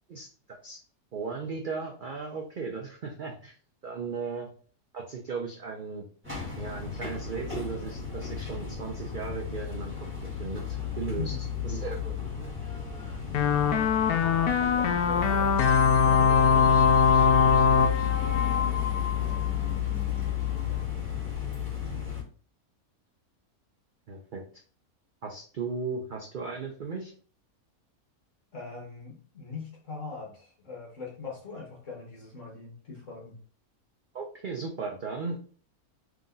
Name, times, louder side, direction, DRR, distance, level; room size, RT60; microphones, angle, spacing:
voice 1, 1.1-3.5 3.8-4.5 4.9-6.1 6.6-9.9 10.4-11.3 11.6-12.1 17.6-17.9 24.1-24.4 25.2-27.1 34.1-35.4, right 4 dB, 55° right, 1 dB, 0.5 m, -36 dB
sound 1, 6.2-22.2, left 10 dB, 10° right, 1.2 m, -32 dB
voice 2, 11.2-11.5 14.7-16.8 28.5-33.4, left 4 dB, 55° left, -4 dB, 1.6 m, -41 dB
sound 2, 13.3-19.5, left 6 dB, 85° left, 1.1 m, -22 dB
3.8 x 2.9 x 3.8 m, 0.42 s
omnidirectional pair, 1.6 m